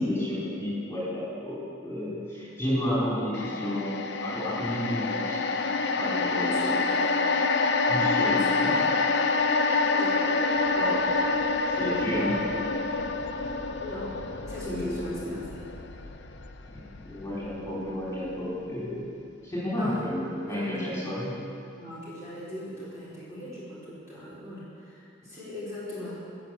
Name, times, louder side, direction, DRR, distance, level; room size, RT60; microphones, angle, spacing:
voice 1, 0.0-3.9 4.2-5.4 6.0-7.1 7.9-8.8 10.7-11.0 11.8-12.4 14.6-15.3 16.7-19.1 19.4-21.3, left 1 dB, 15° left, -9 dB, 4.4 m, -31 dB
sound 1, 3.3-17.7 18.0-18.2, left 3 dB, 60° left, 0.7 m, -27 dB
voice 2, 6.3-6.8 8.2-8.6 10.0-10.3 13.8-14.2 14.5-15.4 19.8-20.0 20.4-20.6 21.8-26.1, left 1 dB, 15° right, -10 dB, 4.1 m, -39 dB
17.5 x 7.6 x 7.8 m, 2.5 s
head